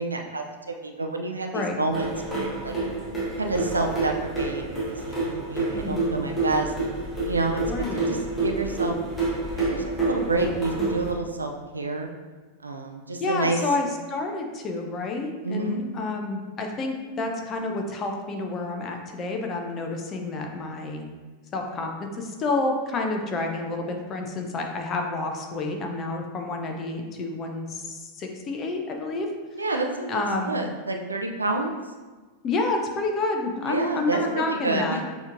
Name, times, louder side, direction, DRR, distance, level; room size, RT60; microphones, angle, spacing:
voice 1, 0.0-2.7 3.4-6.7 7.2-9.0 9.6-12.1 12.6-13.6 15.4-15.8 29.5-31.7 33.6-35.0, right 2 dB, 80° right, 3 dB, 0.4 m, -29 dB
sound 1, 1.9-11.1, right 2 dB, 5° left, 1.0 m, -28 dB
voice 2, 5.7-6.3 7.7-8.1 13.2-21.0 21.5-29.3 30.1-30.6 32.4-35.0, left 3 dB, 30° left, 3 dB, 0.6 m, -29 dB
6.5 x 3.0 x 2.5 m, 1.3 s
figure-of-eight pair, 90°, 0 cm